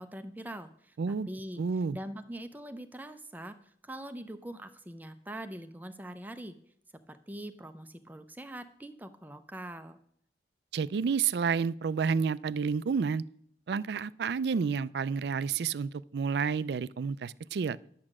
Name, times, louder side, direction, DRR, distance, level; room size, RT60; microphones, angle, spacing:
voice 1, 0.0-1.6 1.9-6.6 7.1-10.0, right 1 dB, 10° right, 8 dB, 0.5 m, -43 dB
voice 2, 1.0-1.3 1.6-2.0 10.7-13.2 13.7-17.8, right 5 dB, 70° right, 18 dB, 0.4 m, -30 dB
11.0 x 7.5 x 6.1 m, 0.68 s
head